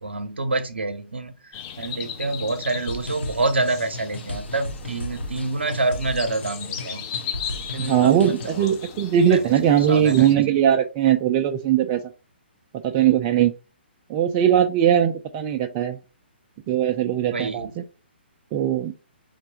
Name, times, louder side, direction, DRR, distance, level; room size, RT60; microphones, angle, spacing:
voice 1, 0.0-7.1 7.6-8.7 9.3-10.4 17.3-17.8, right 2 dB, 75° right, 9 dB, 0.7 m, -27 dB
sound 1, 1.5-10.4, left 8 dB, 30° left, 0.5 m, -37 dB
sound 2, 2.9-8.7, left 1 dB, 75° left, 0.8 m, -36 dB
voice 2, 7.8-12.0 12.8-13.5 14.1-16.0 16.7-17.7 18.5-18.9, right 10 dB, 25° right, 6 dB, 0.3 m, -20 dB
5.8 x 2.1 x 2.8 m, 0.33 s
figure-of-eight pair, 130°, 6 cm